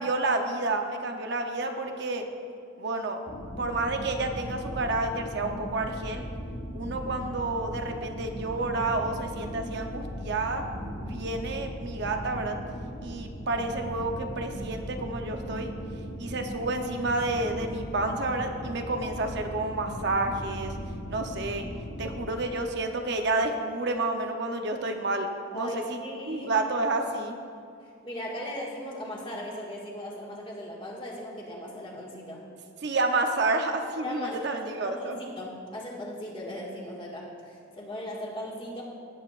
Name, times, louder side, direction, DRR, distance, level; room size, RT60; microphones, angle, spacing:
voice 1, 0.0-2.3 2.8-3.2 3.6-6.2 6.7-10.6 11.1-12.6 13.0-15.7 16.2-20.7 21.1-21.6 22.0-25.3 25.5-26.0 26.3-27.3 32.8-35.2, right 2 dB, 55° right, 4 dB, 0.7 m, -30 dB
sound 1, 3.3-22.3, equal, 65° left, 1.2 m, -38 dB
voice 2, 25.5-26.5 27.8-32.4 34.0-34.4 34.7-38.8, left 1 dB, 25° left, -3 dB, 1.7 m, -38 dB
17.5 x 7.9 x 2.4 m, 2.4 s
head